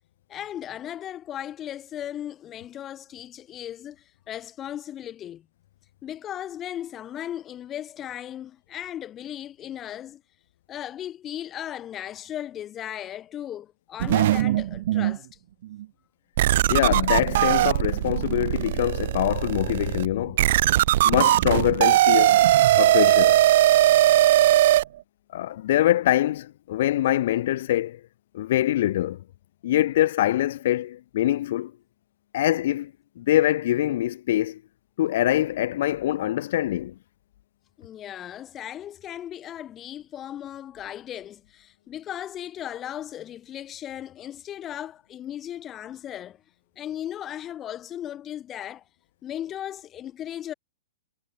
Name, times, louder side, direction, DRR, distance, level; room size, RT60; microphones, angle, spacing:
voice 1, 0.3-5.5 6.0-10.2 10.7-15.3 37.8-46.4 46.8-48.8 49.2-50.5, left 11 dB, 25° left, 7.3 m, -36 dB
sound 1, 14.0-15.2 15.7-15.8 16.4-24.8, right 14 dB, 60° right, 0.8 m, -20 dB
voice 2, 16.7-20.4 21.0-22.4 22.8-23.4 25.3-28.0 28.3-29.2 29.6-31.7 32.3-34.6 35.0-36.9, left 13 dB, 65° left, 2.7 m, -24 dB
hypercardioid pair, 125°, 0 cm